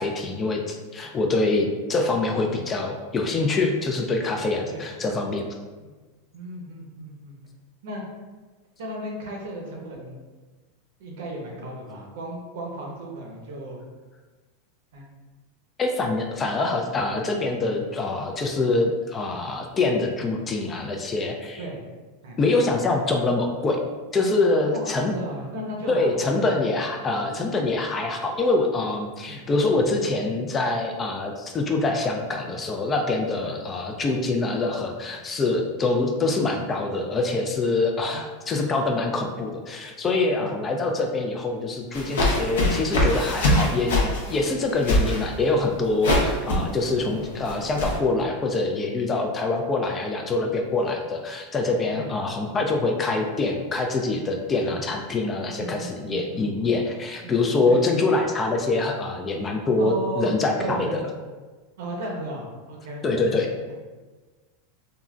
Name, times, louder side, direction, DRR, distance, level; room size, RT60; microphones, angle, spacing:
voice 1, 0.0-5.5 15.8-21.6 22.4-23.8 24.1-25.1 25.9-43.9 44.3-61.0 63.0-63.5, left 3 dB, 25° left, 3 dB, 0.4 m, -25 dB
voice 2, 6.3-7.4 7.8-8.0 8.8-10.2 11.0-13.8 14.9-15.1 21.6-21.8 22.2-22.4 24.7-26.4 29.3-29.4 33.4-33.6 38.1-38.2 40.4-40.5 47.0-47.2 51.9-52.1 54.7-54.8 55.5-56.7 57.2-57.3 57.6-57.8 59.8-60.3 60.6-61.2 61.8-63.0, right 1 dB, 75° right, -1 dB, 0.8 m, -35 dB
sound 1, 41.9-48.0, left 1 dB, 85° left, 0.8 m, -24 dB
3.6 x 2.1 x 2.4 m, 1.3 s
supercardioid pair, 125°, 0 cm